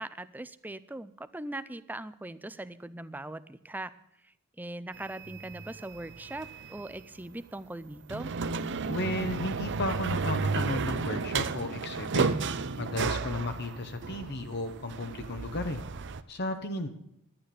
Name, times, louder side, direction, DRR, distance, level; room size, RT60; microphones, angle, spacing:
voice 1, 0.0-3.9 4.6-8.3, right 1 dB, 10° right, 14 dB, 0.5 m, -40 dB
sound 1, 4.9-7.0 8.0-16.2, right 4 dB, 55° right, 0.6 m, -33 dB
voice 2, 8.9-12.3 12.8-15.8 16.3-16.9, left 2 dB, 50° left, 7 dB, 1.0 m, -34 dB
11.5 x 8.9 x 6.9 m, 0.78 s
head